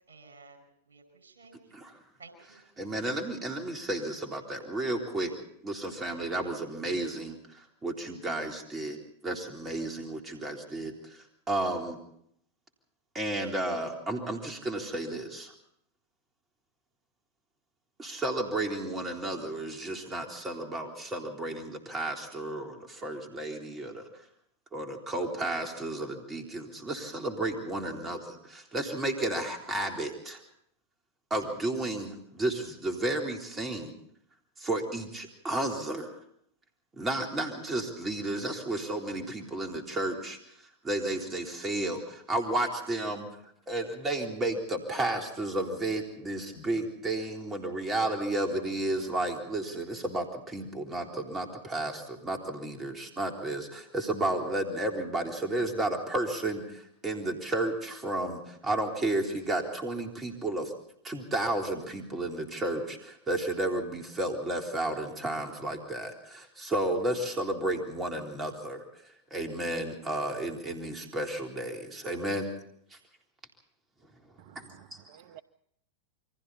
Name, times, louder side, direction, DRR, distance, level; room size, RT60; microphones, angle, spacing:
voice 1, 0.1-1.8 2.2-2.7, right 3 dB, 75° right, 5.7 m, -54 dB
voice 2, 2.8-5.3 5.6-9.0 9.2-11.2 11.5-12.0 13.1-15.5 18.0-24.1 24.7-30.4 31.3-33.9 34.6-36.1 37.0-40.4 40.8-43.3 43.7-60.7 61.0-68.8 69.3-72.5 72.9-73.0 74.6-74.7, right 1 dB, 20° right, 3.8 m, -32 dB
voice 3, 74.4-75.4, right 11 dB, 60° right, 0.9 m, -53 dB
28.5 x 23.5 x 4.2 m
hypercardioid pair, 95°, 0 cm